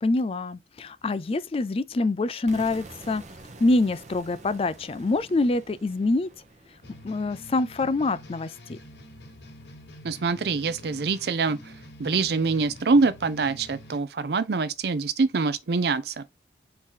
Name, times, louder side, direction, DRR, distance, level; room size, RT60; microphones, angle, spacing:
voice 1, 0.0-3.2 3.6-6.3 7.0-8.8, left 2 dB, 30° left, 0.4 m, -25 dB
sound 1, 2.5-8.3, right 2 dB, 40° right, 0.8 m, -48 dB
sound 2, 6.8-14.0, left 1 dB, 70° left, 0.9 m, -46 dB
voice 2, 10.0-11.7 12.0-16.3, right 4 dB, 60° right, 0.5 m, -25 dB
4.6 x 2.9 x 3.7 m
head